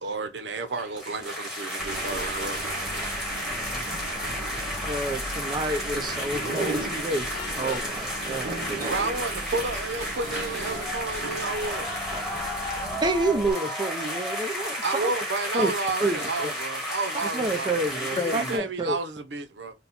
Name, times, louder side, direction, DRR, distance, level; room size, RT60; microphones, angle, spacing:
voice 1, 0.0-2.6 8.9-11.9 14.8-19.7, right 3 dB, 85° right, 0.7 m, -31 dB
sound 1, 0.7-18.6, equal, 5° right, 1.3 m, -32 dB
sound 2, 1.8-13.5, right 2 dB, 50° right, 1.1 m, -36 dB
voice 2, 3.5-5.2 18.2-18.6, left 3 dB, 25° left, 0.6 m, -36 dB
voice 3, 4.8-7.3 7.5-8.9 13.0-15.1 15.5-15.7 16.0-16.5 17.1-19.0, right 2 dB, 25° right, 0.6 m, -29 dB
Vehicle horn car horn honking, 7.3-8.0, left 8 dB, 75° left, 0.3 m, -40 dB
4.1 x 2.2 x 4.1 m
head